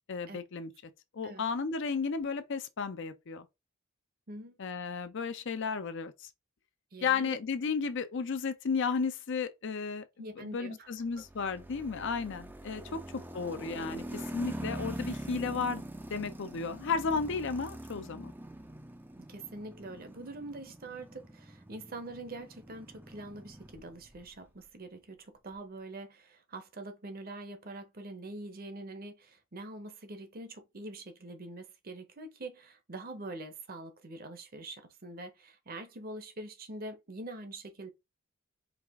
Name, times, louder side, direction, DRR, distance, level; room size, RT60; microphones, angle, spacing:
voice 1, 0.1-0.7 1.1-3.5 4.6-6.3 7.0-10.0 10.4-18.3, left 5 dB, 55° left, 0.5 m, -34 dB
voice 2, 4.3-4.6 6.9-7.4 10.2-10.9 12.7-13.0 19.2-37.9, right 2 dB, 40° right, 0.8 m, -44 dB
sound 1, 11.1-24.3, right 1 dB, 10° right, 0.4 m, -44 dB
4.7 x 2.4 x 3.5 m
head